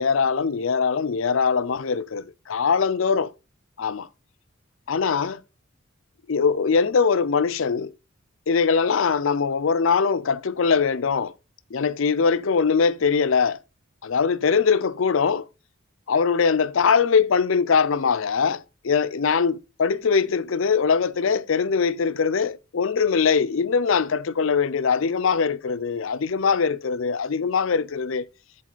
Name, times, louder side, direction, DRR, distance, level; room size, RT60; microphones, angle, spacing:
voice 1, 0.0-3.3 3.8-4.1 4.9-5.4 6.3-7.9 8.5-11.3 11.7-13.6 14.0-15.5 16.1-28.3, left 5 dB, 65° left, 0.5 m, -22 dB
10.5 x 4.2 x 4.0 m
head